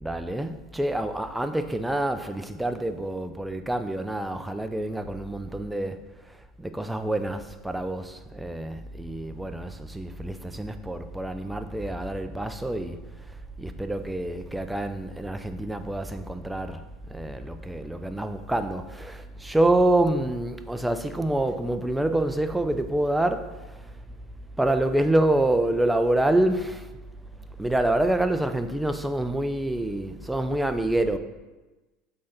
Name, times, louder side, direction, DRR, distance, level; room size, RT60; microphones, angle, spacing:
voice 1, 0.0-13.2 13.6-16.8 17.1-24.0 24.6-26.9 27.6-31.2, right 1 dB, 5° right, 0.5 m, -27 dB
6.3 x 3.9 x 5.7 m
supercardioid pair, 105°, 0 cm